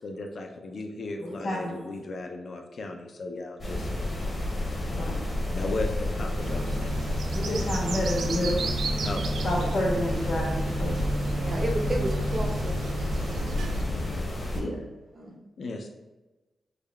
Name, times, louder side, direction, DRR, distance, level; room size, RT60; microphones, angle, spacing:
voice 1, 0.0-3.9 5.5-6.9 9.0-9.5 13.9-14.2 15.6-15.9, left 2 dB, 55° left, 3 dB, 0.4 m, -36 dB
voice 2, 1.2-1.7 4.9-5.2 7.3-8.6 9.4-11.0 14.5-14.7, left 1 dB, 70° left, -5 dB, 1.4 m, -29 dB
sound 1, 3.6-14.6, left 1 dB, 30° left, 0.8 m, -30 dB
sound 2, 6.4-13.8, right 2 dB, 90° right, 0.3 m, -32 dB
voice 3, 11.2-13.5 15.1-15.3, right 1 dB, 30° right, 2 dB, 0.5 m, -33 dB
3.5 x 2.2 x 3.3 m, 1.1 s
wide cardioid pair, 150°, 0 cm